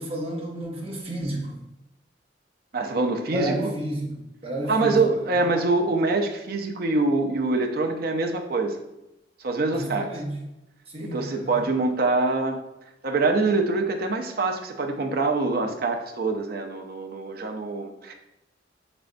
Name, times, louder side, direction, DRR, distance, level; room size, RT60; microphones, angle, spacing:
voice 1, 0.0-1.5 3.3-5.4 9.7-10.4 10.9-11.6, right 1 dB, 35° right, -2 dB, 0.9 m, -31 dB
voice 2, 2.7-3.5 4.7-8.8 9.4-10.1 11.0-12.6 13.0-18.1, right 3 dB, 55° right, 3 dB, 0.5 m, -24 dB
5.1 x 3.3 x 2.5 m, 0.91 s
head